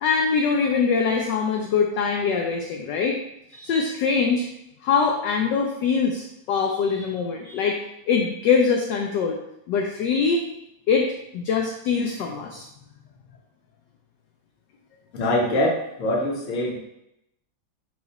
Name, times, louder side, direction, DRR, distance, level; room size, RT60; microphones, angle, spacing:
voice 1, 0.0-3.2 3.5-4.5 4.8-7.8 8.1-9.4 9.7-10.4 10.9-11.1 11.3-12.7, left 5 dB, 75° left, 2 dB, 1.0 m, -23 dB
voice 2, 15.1-16.8, left 1 dB, 50° left, -1 dB, 1.0 m, -23 dB
4.8 x 2.4 x 4.0 m, 0.81 s
omnidirectional pair, 2.3 m